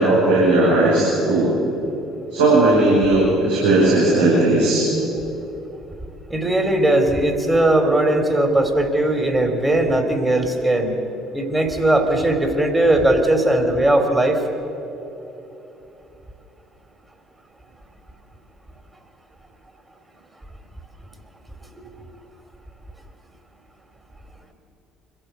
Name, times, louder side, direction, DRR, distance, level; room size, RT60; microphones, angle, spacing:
voice 1, 0.0-1.5 2.3-4.8, right 2 dB, 80° right, -8 dB, 5.9 m, -16 dB
voice 2, 6.3-11.0 11.3-14.4 21.7-21.8, right 1 dB, 15° right, 5 dB, 3.4 m, -18 dB
24.5 x 15.5 x 8.2 m, 3.0 s
hypercardioid pair, 55°, 0 cm